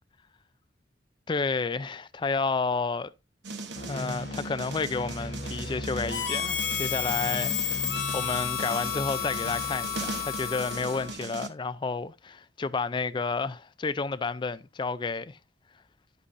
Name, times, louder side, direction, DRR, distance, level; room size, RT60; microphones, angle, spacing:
voice 1, 1.3-3.1 3.8-15.4, left 4 dB, 25° left, 0.4 m, -31 dB
sound 1, 3.4-11.5, right 3 dB, 75° right, 1.1 m, -40 dB
sound 2, 3.7-11.2, left 1 dB, 50° left, 0.9 m, -40 dB
Harmonica, 6.1-11.2, left 9 dB, 90° left, 2.0 m, -31 dB
9.9 x 8.2 x 2.6 m
head